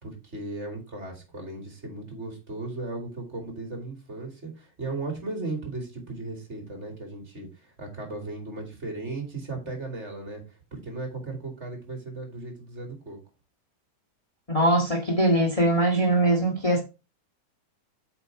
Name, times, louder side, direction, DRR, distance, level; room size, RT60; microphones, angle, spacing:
voice 1, 0.0-13.2, right 2 dB, 20° right, 2.6 m, -36 dB
voice 2, 14.5-16.8, right 1 dB, 65° left, 0.3 m, -22 dB
8.2 x 5.0 x 4.7 m
omnidirectional pair, 3.7 m